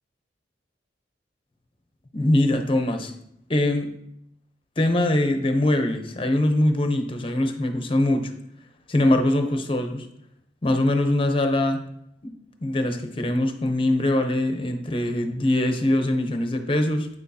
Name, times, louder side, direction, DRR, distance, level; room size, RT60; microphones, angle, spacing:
voice 1, 2.1-3.1 3.5-3.9 4.8-8.3 8.9-10.1 10.6-11.8 12.2-12.3 12.6-17.1, left 1 dB, 30° left, 6 dB, 0.7 m, -22 dB
8.7 x 6.2 x 2.8 m, 0.76 s
head